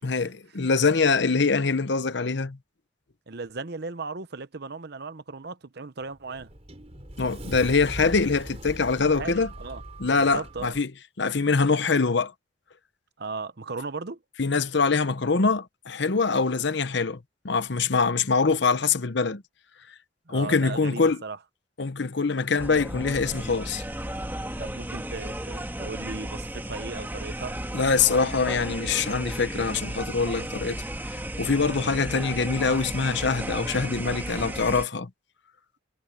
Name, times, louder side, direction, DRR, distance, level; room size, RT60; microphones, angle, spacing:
voice 1, 0.0-2.6 7.2-9.5 10.0-10.9 11.2-12.3 14.4-17.2 17.4-19.4 20.3-21.2 21.8-23.8 27.7-30.8 31.1-35.1, left 4 dB, 60° left, 0.9 m, -24 dB
voice 2, 3.3-6.5 9.1-9.8 10.2-10.8 13.2-14.2 20.3-21.4 24.6-27.6 30.4-30.6 31.8-32.0, right 4 dB, 55° right, 0.9 m, -37 dB
Sliding door, 6.0-10.8, right 1 dB, 30° right, 4.3 m, -40 dB
sound 1, 22.6-34.8, right 1 dB, 10° right, 2.1 m, -34 dB
head